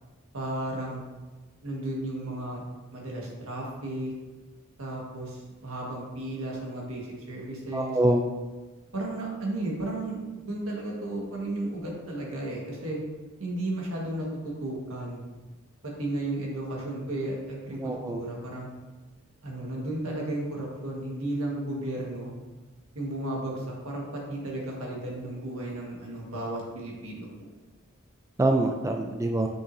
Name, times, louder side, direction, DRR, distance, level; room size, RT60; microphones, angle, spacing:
voice 1, 0.3-1.0 1.6-2.6 2.9-4.1 4.8-8.0 8.9-10.2 10.5-13.0 13.4-15.2 15.8-18.7 19.4-22.3 22.9-27.3, right 1 dB, 80° right, -2 dB, 1.6 m, -34 dB
voice 2, 7.7-8.2 17.8-18.2 28.4-29.5, right 1 dB, 15° right, 4 dB, 0.3 m, -25 dB
6.2 x 5.9 x 2.7 m, 1.2 s
head